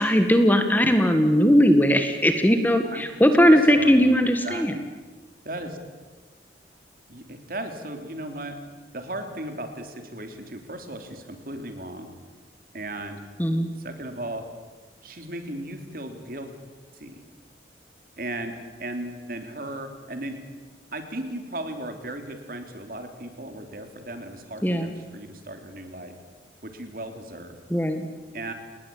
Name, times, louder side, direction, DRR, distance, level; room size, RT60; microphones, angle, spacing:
voice 1, 0.0-4.7 13.4-13.7 24.6-24.9 27.7-28.1, equal, 10° left, 7 dB, 1.6 m, -19 dB
voice 2, 3.5-4.2 4.4-4.7 5.4-5.8 7.1-8.6 8.9-12.1 12.7-13.2 13.8-14.5 15.0-16.5 16.9-17.2 18.2-20.4 20.9-26.1 26.6-27.6 28.3-28.5, right 1 dB, 50° right, 6 dB, 3.4 m, -36 dB
29.0 x 20.0 x 8.7 m, 1.3 s
head